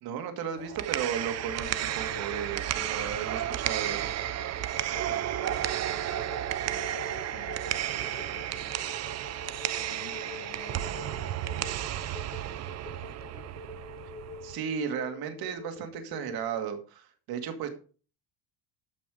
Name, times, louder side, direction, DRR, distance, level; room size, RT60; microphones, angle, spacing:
voice 1, 0.0-4.1 14.4-17.7, right 8 dB, 55° right, 7 dB, 2.4 m, -35 dB
sound 1, 0.6-14.6, right 12 dB, 40° right, 0.7 m, -33 dB
Telephone, 1.3-16.6, left 4 dB, 25° left, 0.6 m, -45 dB
voice 2, 4.9-12.5 12.8-13.6, left 9 dB, 65° left, 2 dB, 2.3 m, -52 dB
13.0 x 6.0 x 5.1 m, 0.38 s
cardioid pair, 140°, 43 cm